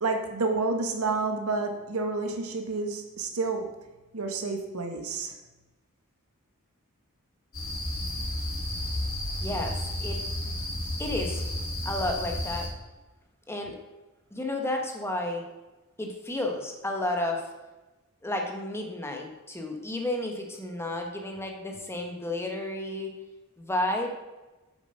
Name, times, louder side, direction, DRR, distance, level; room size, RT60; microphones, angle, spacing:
voice 1, 0.0-3.7 4.1-5.3, right 3 dB, 70° right, 4 dB, 1.4 m, -29 dB
sound 1, 7.5-12.7, left 1 dB, 65° left, 3.8 m, -32 dB
voice 2, 9.4-10.2 11.0-11.4 11.8-12.7 13.5-13.8 14.3-15.4 16.0-17.5 18.2-23.1 23.6-24.1, left 1 dB, 10° left, 2 dB, 1.2 m, -32 dB
8.1 x 7.1 x 5.6 m, 1.1 s
head